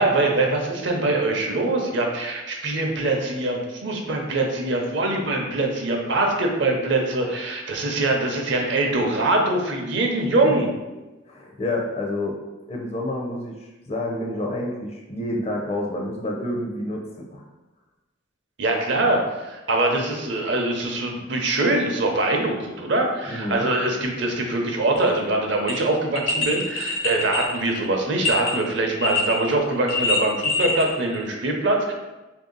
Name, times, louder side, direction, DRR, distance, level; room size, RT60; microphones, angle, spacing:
voice 1, 0.0-10.7 18.6-31.9, right 2 dB, 60° right, 1 dB, 0.6 m, -23 dB
voice 2, 11.3-12.4 12.7-17.4 23.3-23.7, left 1 dB, 30° left, 0 dB, 0.5 m, -29 dB
sound 1, 25.0-25.1 25.7-25.8 26.2-28.5 29.0-29.5 29.7-30.9 31.1-31.2, left 2 dB, 75° left, 0.7 m, -24 dB
3.3 x 2.7 x 3.8 m, 1.1 s
head